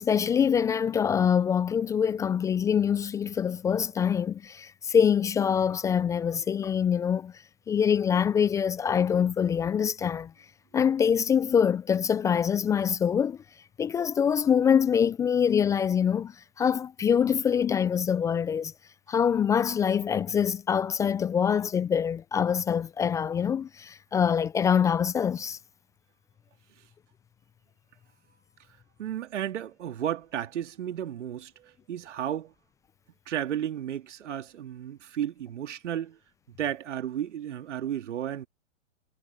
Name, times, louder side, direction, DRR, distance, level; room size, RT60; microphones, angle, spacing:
voice 1, 0.0-7.3 7.7-10.3 10.7-13.4 13.8-16.3 16.6-18.7 19.1-25.6, left 7 dB, 10° left, 0.4 m, -24 dB
voice 2, 29.0-32.5 33.3-36.2 36.5-38.5, right 10 dB, 65° right, 2.9 m, -33 dB
hypercardioid pair, 115°, 38 cm